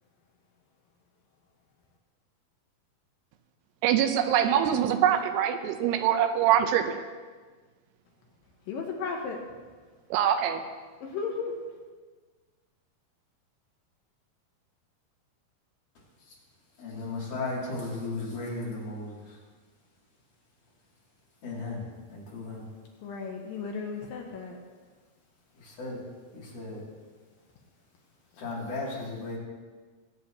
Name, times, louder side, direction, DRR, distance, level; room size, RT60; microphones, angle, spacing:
voice 1, 3.8-7.0 10.1-10.6, right 10 dB, 90° right, 8 dB, 2.8 m, -24 dB
voice 2, 8.7-9.4 11.0-11.5 23.0-24.6, left 5 dB, 70° left, 1 dB, 2.4 m, -34 dB
voice 3, 16.8-19.2 21.4-21.8 22.1-22.7 25.6-26.0 26.3-26.8 28.4-29.4, left 3 dB, 55° left, -5 dB, 4.1 m, -35 dB
21.5 x 8.7 x 3.0 m, 1.4 s
omnidirectional pair, 4.7 m